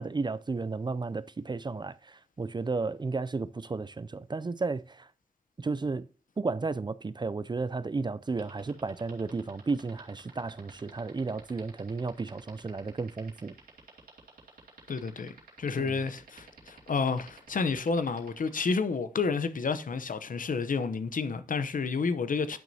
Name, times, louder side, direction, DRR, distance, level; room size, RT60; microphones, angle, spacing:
voice 1, 0.0-5.1 5.6-6.1 6.4-13.5 15.8-16.0, right 4 dB, 30° right, 0.4 m, -33 dB
sound 1, 8.3-18.6, right 5 dB, 90° right, 2.1 m, -51 dB
voice 2, 14.9-15.3 15.6-22.6, left 4 dB, 65° left, 0.7 m, -30 dB
10.5 x 6.1 x 2.8 m
cardioid pair, 60°, 15 cm